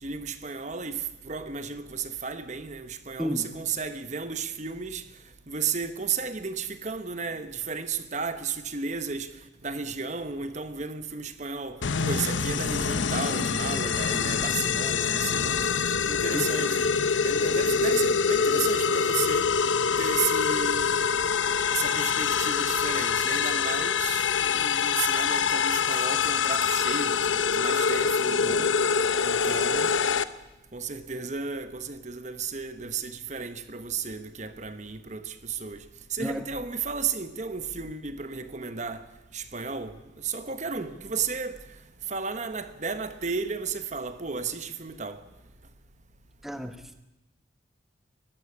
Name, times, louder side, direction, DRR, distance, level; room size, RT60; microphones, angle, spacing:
voice 1, 0.0-5.0 5.5-9.3 9.6-19.5 20.0-21.0 21.7-28.7 29.2-29.9 30.7-35.8 36.1-39.0 39.3-41.6 42.1-45.2, right 5 dB, 40° right, 1.1 m, -33 dB
sound 1, 11.8-30.2, left 6 dB, 90° left, 0.8 m, -25 dB
voice 2, 46.4-46.8, equal, ahead, 1.1 m, -31 dB
22.0 x 15.0 x 8.5 m
head